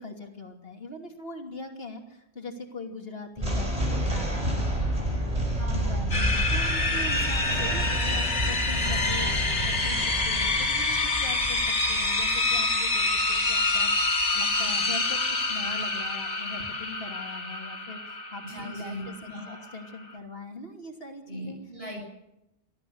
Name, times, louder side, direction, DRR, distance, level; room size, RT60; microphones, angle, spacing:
voice 1, 0.0-21.6, left 2 dB, 60° left, 3 dB, 3.0 m, -41 dB
sound 1, 3.4-14.7, right 1 dB, 30° right, 5.5 m, -30 dB
voice 2, 5.5-6.3 18.4-19.6 21.2-22.0, equal, 60° right, 0 dB, 8.3 m, -39 dB
sound 2, 6.1-20.1, left 2 dB, 85° left, 2.7 m, -27 dB
25.5 x 14.0 x 7.9 m, 0.90 s
omnidirectional pair, 1.2 m